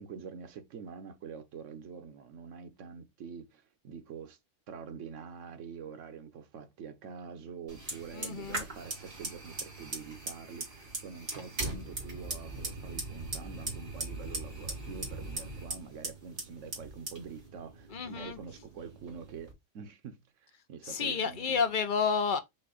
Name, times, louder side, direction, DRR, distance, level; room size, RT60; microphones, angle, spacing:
voice 1, 0.0-4.4 4.7-21.6, right 6 dB, 80° right, 1.1 m, -46 dB
Fire, 7.7-19.5, right 2 dB, 50° right, 2.0 m, -40 dB
voice 2, 8.1-8.6 17.9-18.4 20.8-22.4, left 6 dB, 50° left, 0.7 m, -30 dB
5.5 x 2.4 x 3.9 m
omnidirectional pair, 1.3 m